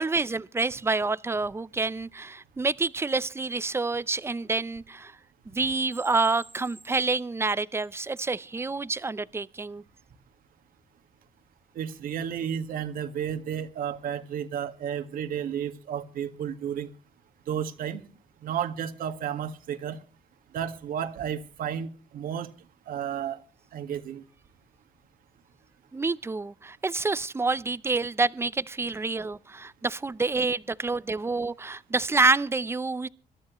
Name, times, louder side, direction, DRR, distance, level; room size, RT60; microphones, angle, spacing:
voice 1, 0.0-5.2 5.5-9.8 25.9-33.1, right 3 dB, 15° right, 0.6 m, -28 dB
voice 2, 11.8-16.9 17.5-18.0 18.4-20.0 20.5-22.5 22.9-23.4 23.7-24.2, right 9 dB, 75° right, 1.8 m, -32 dB
26.0 x 13.0 x 3.1 m
cardioid pair, 110°, 15 cm